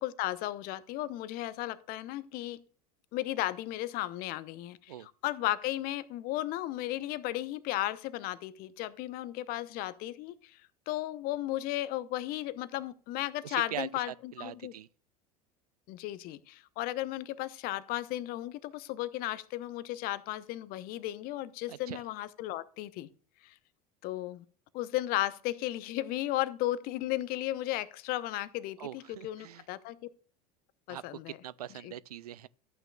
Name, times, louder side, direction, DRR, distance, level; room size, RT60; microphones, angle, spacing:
voice 1, 0.0-2.6 3.1-10.6 10.9-14.7 15.9-23.1 23.4-23.5 24.0-24.4 24.7-30.0 30.9-31.4 31.8-31.9, left 15 dB, 50° left, 0.8 m, -35 dB
voice 2, 13.4-14.9 21.7-22.0 28.8-29.7 30.9-32.5, right 12 dB, 75° right, 0.5 m, -42 dB
14.0 x 8.9 x 2.3 m
figure-of-eight pair, 75°, 20 cm